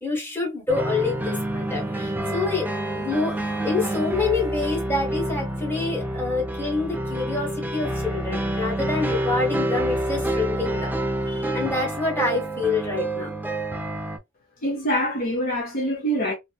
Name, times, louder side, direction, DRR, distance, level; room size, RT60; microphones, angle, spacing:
voice 1, 0.0-2.7 2.9-11.0 11.3-13.4, left 3 dB, 10° left, 1.3 m, -27 dB
sound 1, 0.7-14.2, right 1 dB, 10° right, 0.3 m, -28 dB
voice 2, 14.6-16.3, equal, 45° left, 0.6 m, -25 dB
2.7 x 2.3 x 2.2 m
head